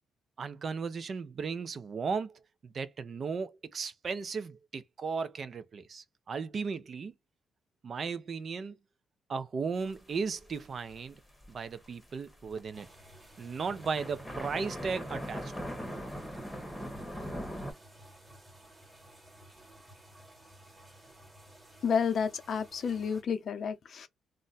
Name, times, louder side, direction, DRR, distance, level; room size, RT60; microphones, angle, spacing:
voice 1, 0.4-7.1 7.8-8.8 9.3-11.2 11.5-12.9 13.4-15.7, right 5 dB, 45° right, 0.5 m, -36 dB
sound 1, 9.8-11.0 11.3-12.9 13.2-13.3 13.6-17.7, equal, 5° left, 1.0 m, -40 dB
sound 2, 12.7-23.2, right 1 dB, 15° right, 1.4 m, -55 dB
voice 2, 21.8-24.1, left 6 dB, 55° left, 0.6 m, -30 dB
2.5 x 2.2 x 4.0 m
cardioid pair, 90°, 0 cm